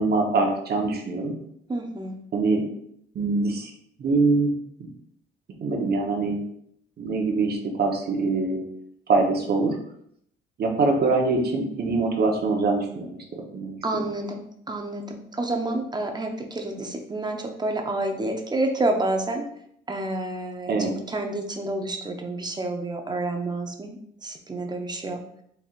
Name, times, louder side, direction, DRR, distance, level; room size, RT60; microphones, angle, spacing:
voice 1, 0.0-1.3 2.3-2.6 3.1-3.7 4.0-4.5 5.6-6.4 7.0-8.6 9.1-9.8 10.6-14.0 20.7-21.0, right 3 dB, 55° right, 1 dB, 1.0 m, -24 dB
voice 2, 1.7-2.2 13.8-19.4 19.9-25.2, right 2 dB, 20° right, 3 dB, 0.7 m, -29 dB
4.3 x 3.4 x 2.5 m, 0.69 s
cardioid pair, 90°, 20 cm